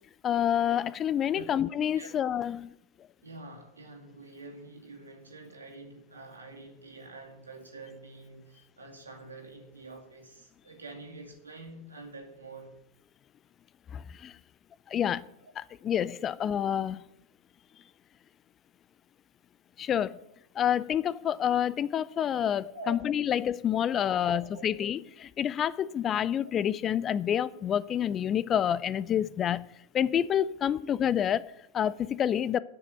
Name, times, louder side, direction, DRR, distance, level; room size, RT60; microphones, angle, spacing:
voice 1, 0.2-2.7 13.9-14.4 14.9-15.3 15.6-17.0 19.8-20.2 20.6-29.7 29.9-32.6, left 9 dB, 25° left, 0.4 m, -28 dB
voice 2, 3.2-12.7 22.7-23.0 24.1-24.6, right 3 dB, 75° right, 2.4 m, -46 dB
10.0 x 6.6 x 8.9 m
figure-of-eight pair, 90°, 0 cm